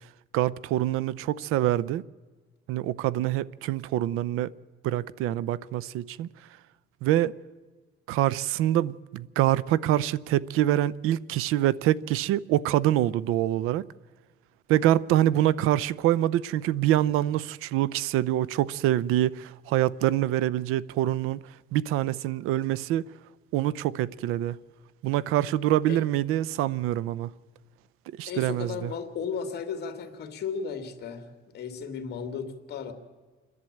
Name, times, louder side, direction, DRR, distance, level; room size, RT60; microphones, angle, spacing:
voice 1, 0.3-2.0 2.7-4.5 4.8-6.3 7.0-7.3 8.1-13.8 14.7-21.4 21.7-23.1 23.5-24.6 25.0-27.3 28.2-28.9, right 13 dB, 85° right, 0.6 m, -25 dB
voice 2, 28.3-31.3 31.5-32.9, left 6 dB, 50° left, 2.4 m, -35 dB
28.5 x 11.0 x 8.6 m
cardioid pair, 145°, 21 cm